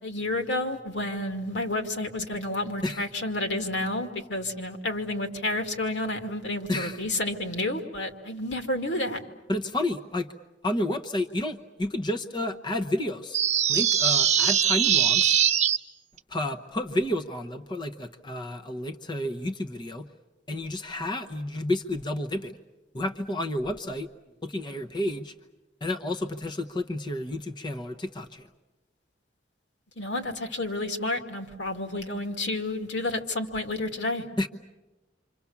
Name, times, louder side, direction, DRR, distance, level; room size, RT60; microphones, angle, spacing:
voice 1, 0.0-9.2 30.0-34.2, left 2 dB, 90° left, 5 dB, 2.4 m, -30 dB
voice 2, 6.7-7.0 9.5-10.3 10.6-13.4 13.7-15.4 16.3-20.1 20.5-22.6 22.9-24.1 24.4-25.3 25.8-28.5 34.4-34.5, left 1 dB, 25° left, 5 dB, 0.9 m, -30 dB
sound 1, 13.3-15.8, right 9 dB, 40° right, 0.8 m, -22 dB
28.5 x 26.0 x 7.2 m, 1.0 s
head